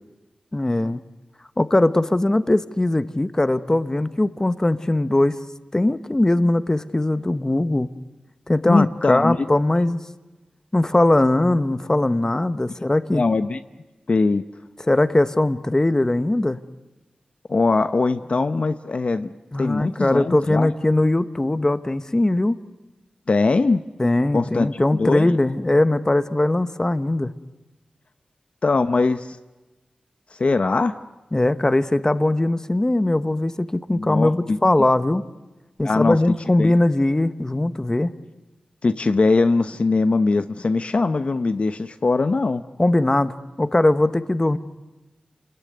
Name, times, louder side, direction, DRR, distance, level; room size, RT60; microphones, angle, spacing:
voice 1, 0.5-1.0 1.6-5.4 5.7-7.9 8.5-10.0 10.7-13.2 14.9-16.6 19.5-22.6 24.0-27.3 31.3-35.3 35.8-38.1 42.8-44.6, left 1 dB, 20° left, 12 dB, 1.0 m, -20 dB
voice 2, 8.7-9.5 13.1-13.6 14.1-14.4 17.5-19.3 19.6-20.7 23.3-23.8 24.3-24.7 25.0-25.3 28.6-29.4 30.3-30.9 33.9-34.6 35.8-36.2 36.6-36.7 38.8-42.6, left 3 dB, 55° left, 10 dB, 0.8 m, -21 dB
28.5 x 20.5 x 9.5 m, 1.1 s
wide cardioid pair, 75°, 3 cm